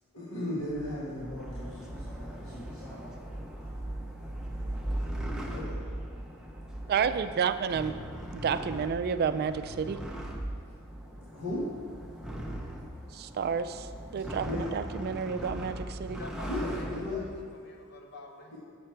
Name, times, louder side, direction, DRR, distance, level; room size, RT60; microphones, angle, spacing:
voice 1, 0.1-3.1 3.6-3.7 5.4-5.8 11.3-11.7 14.4-14.6 16.4-17.3, left 1 dB, 80° left, -8 dB, 1.7 m, -36 dB
sound 1, 0.6-17.5, right 1 dB, 5° right, 0.6 m, -39 dB
voice 2, 6.9-7.9 8.3-10.0 13.1-13.9 14.1-16.2, right 6 dB, 45° right, 11 dB, 0.3 m, -30 dB
voice 3, 16.2-18.6, left 1 dB, 50° left, 2 dB, 0.9 m, -47 dB
7.2 x 6.7 x 4.5 m, 2.2 s
head